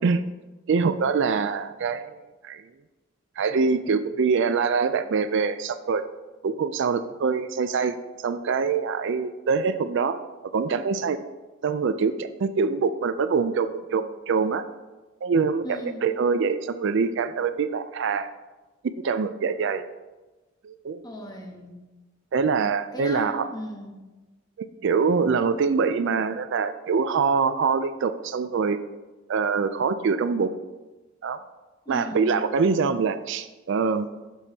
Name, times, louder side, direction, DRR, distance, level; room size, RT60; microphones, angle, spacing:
voice 1, 0.7-2.2 2.4-2.6 3.4-6.0 6.4-8.0 8.2-10.2 10.5-11.2 11.6-14.7 15.2-18.3 19.0-19.9 20.6-21.0 22.3-23.5 24.6-28.8 29.3-30.6 31.2-31.4 31.9-34.1, right 5 dB, 60° right, 11 dB, 0.4 m, -24 dB
voice 2, 15.6-16.0 21.0-21.8 22.9-24.0 31.9-32.4, equal, 20° left, 1 dB, 1.1 m, -36 dB
11.5 x 7.1 x 2.8 m, 1.2 s
head